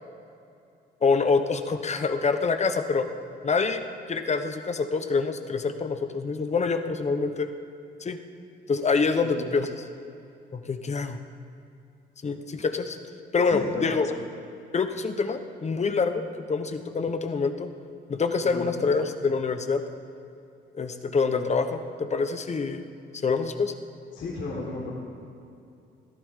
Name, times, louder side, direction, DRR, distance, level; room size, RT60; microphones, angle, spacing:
voice 1, 1.0-3.1 3.4-7.5 8.0-8.2 8.7-9.8 10.5-11.2 12.2-13.0 13.3-14.1 14.7-17.7 18.1-19.8 20.7-22.8 23.2-23.7, left 4 dB, 35° left, 8 dB, 1.1 m, -26 dB
voice 2, 13.5-14.0 18.4-18.9 24.1-24.9, left 3 dB, 70° left, -5 dB, 4.2 m, -34 dB
21.0 x 14.0 x 3.8 m, 2.7 s
cardioid pair, 90°, 20 cm